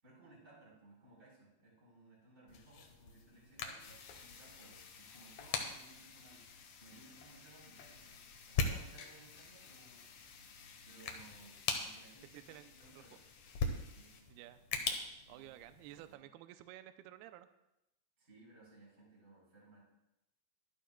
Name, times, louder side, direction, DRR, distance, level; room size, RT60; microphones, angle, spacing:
voice 1, 0.0-6.5 6.8-10.0 10.8-13.2 13.9-14.3 15.3-15.5 15.8-16.2 18.2-19.8, right 2 dB, 15° right, -5 dB, 4.6 m, -61 dB
sound 1, 2.5-16.1, left 4 dB, 85° left, 1.4 m, -43 dB
sound 2, 3.8-14.2, left 6 dB, 65° left, 2.8 m, -57 dB
voice 2, 12.3-13.0 14.3-14.6 15.3-17.5, right 13 dB, 80° right, 9 dB, 2.4 m, -53 dB
24.0 x 10.0 x 2.3 m, 0.88 s
omnidirectional pair, 4.8 m